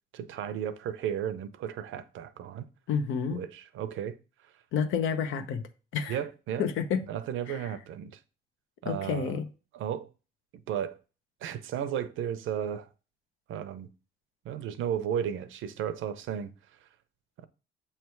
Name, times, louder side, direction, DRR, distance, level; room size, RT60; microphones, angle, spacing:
voice 1, 0.1-2.7 3.3-4.2 6.1-6.6 7.1-8.1 8.8-9.4 9.7-10.1 10.7-11.0 11.4-12.9 13.5-13.9 14.4-16.5 17.4-17.5, right 9 dB, 80° right, 0.7 m, -34 dB
voice 2, 2.9-3.4 4.7-5.6 5.9-6.2 6.6-7.0 7.5-7.6 8.9-9.5, left 6 dB, 85° left, 0.9 m, -29 dB
7.2 x 3.3 x 4.5 m
cardioid pair, 90°, 20 cm